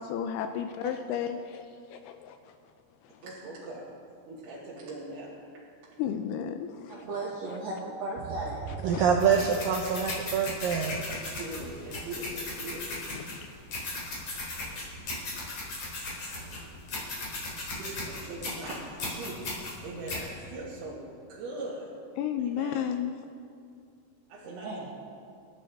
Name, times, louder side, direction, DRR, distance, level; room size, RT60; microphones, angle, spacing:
voice 1, 0.0-1.6 1.9-2.6 3.0-3.3 6.0-7.1 7.5-7.6 8.7-9.1 13.1-13.5 22.2-23.2, left 8 dB, 80° left, 7 dB, 2.4 m, -33 dB
voice 2, 3.2-3.8 4.3-5.3 8.9-9.0 11.1-12.9 13.3-13.4 17.6-19.4 19.8-21.9 22.4-22.8 24.3-24.7, right 2 dB, 65° right, -7 dB, 3.8 m, -41 dB
voice 3, 6.9-8.7 24.4-24.9, right 2 dB, 50° right, -6 dB, 2.2 m, -36 dB
voice 4, 8.8-11.1, right 6 dB, 85° right, 2 dB, 1.9 m, -25 dB
sound 1, 9.2-20.2, left 2 dB, 45° left, 4.4 m, -37 dB
28.0 x 10.5 x 3.5 m, 2.4 s
omnidirectional pair, 5.0 m